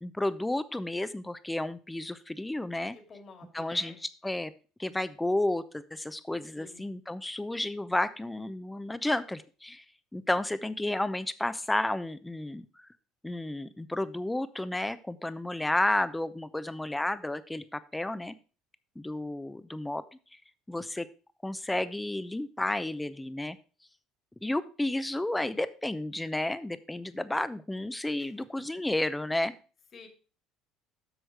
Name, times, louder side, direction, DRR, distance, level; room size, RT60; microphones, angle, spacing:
voice 1, 0.0-3.0 3.5-3.9 4.2-4.5 4.8-9.8 10.1-12.7 13.2-18.4 19.0-20.0 20.7-21.1 21.4-23.6 24.4-29.5, left 1 dB, 10° left, 14 dB, 0.7 m, -32 dB
voice 2, 2.9-4.0 6.6-6.8 28.2-28.3 29.9-30.1, left 4 dB, 40° left, 4 dB, 2.1 m, -50 dB
8.1 x 6.2 x 4.8 m, 0.36 s
supercardioid pair, 100°, 0 cm